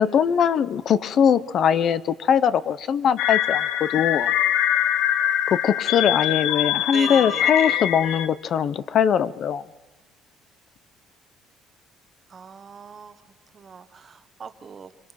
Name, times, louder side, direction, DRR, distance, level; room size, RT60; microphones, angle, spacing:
voice 1, 0.0-4.3 5.5-9.6, left 8 dB, 45° left, 15 dB, 0.7 m, -21 dB
sound 1, 3.2-8.3, left 11 dB, 75° left, 1.2 m, -23 dB
voice 2, 6.9-7.7 12.3-13.1 13.5-14.9, right 6 dB, 30° right, 11 dB, 1.0 m, -38 dB
25.0 x 24.5 x 5.8 m, 1.1 s
cardioid pair, 150°, 0 cm